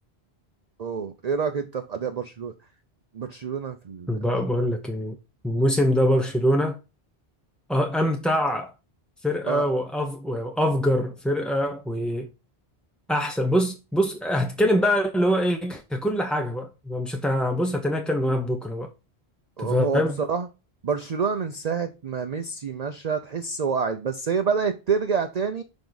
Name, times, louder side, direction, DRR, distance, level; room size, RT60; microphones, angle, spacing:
voice 1, 0.8-2.5 3.1-4.2 9.5-9.7 19.6-20.5 20.8-25.6, right 6 dB, 45° right, 0.7 m, -27 dB
voice 2, 4.1-5.2 5.4-6.8 7.7-8.7 9.2-12.3 13.1-18.9 19.6-20.2, equal, ahead, 0.5 m, -24 dB
7.0 x 4.8 x 3.9 m
omnidirectional pair, 1.1 m